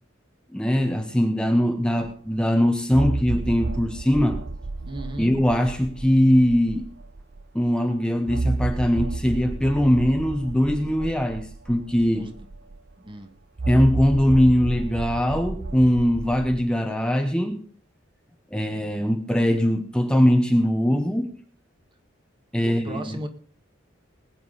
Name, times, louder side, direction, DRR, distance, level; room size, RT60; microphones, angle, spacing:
voice 1, 0.5-4.4 5.2-6.9 7.5-12.3 13.7-17.6 18.5-21.4 22.5-23.2, equal, 5° left, 5 dB, 1.0 m, -21 dB
sound 1, 2.0-2.1 2.9-7.4 8.3-12.9 13.6-16.6, right 3 dB, 60° right, 0.7 m, -31 dB
voice 2, 4.9-5.4 12.2-12.5 13.0-13.3 22.6-23.3, right 1 dB, 25° right, 7 dB, 1.8 m, -35 dB
20.5 x 9.4 x 4.0 m, 0.44 s
head